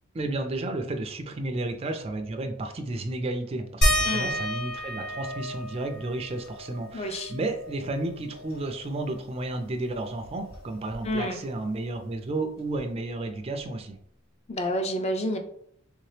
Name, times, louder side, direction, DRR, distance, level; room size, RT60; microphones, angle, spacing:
voice 1, 0.1-14.0, right 2 dB, 30° right, 5 dB, 0.4 m, -32 dB
sound 1, 3.8-8.9 9.3-9.4 9.7-11.5 12.7-12.8 13.6-13.7, equal, 50° left, 1.2 m, -31 dB
voice 2, 4.0-4.4 6.9-7.3 11.0-11.4 14.5-15.4, equal, 30° left, 5 dB, 0.5 m, -29 dB
3.2 x 2.8 x 3.2 m, 0.67 s
head